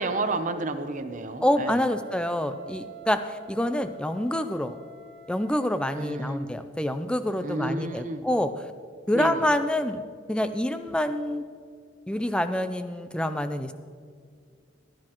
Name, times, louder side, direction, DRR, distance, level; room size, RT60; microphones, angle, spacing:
voice 1, 0.0-1.8 5.9-6.5 7.4-8.3 9.1-9.5, right 2 dB, 40° right, 8 dB, 0.7 m, -31 dB
voice 2, 1.4-4.8 5.3-8.5 9.1-10.0 10.3-11.4 12.1-13.7, left 1 dB, 5° left, 10 dB, 0.4 m, -27 dB
Wind instrument woodwind instrument, 1.7-6.4, right 1 dB, 75° right, 1.4 m, -47 dB
15.0 x 10.5 x 3.0 m, 2.2 s
head